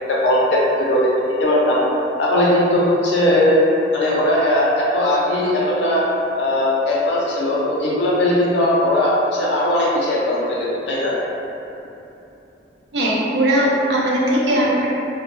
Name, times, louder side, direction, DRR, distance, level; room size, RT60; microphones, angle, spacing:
voice 1, 0.1-1.1 1.4-1.8 2.2-3.6 3.9-6.0 6.4-11.1, left 1 dB, 90° left, -6 dB, 0.6 m, -18 dB
voice 2, 12.9-14.9, right 1 dB, 75° right, -5 dB, 0.5 m, -18 dB
2.1 x 2.1 x 3.0 m, 2.8 s
head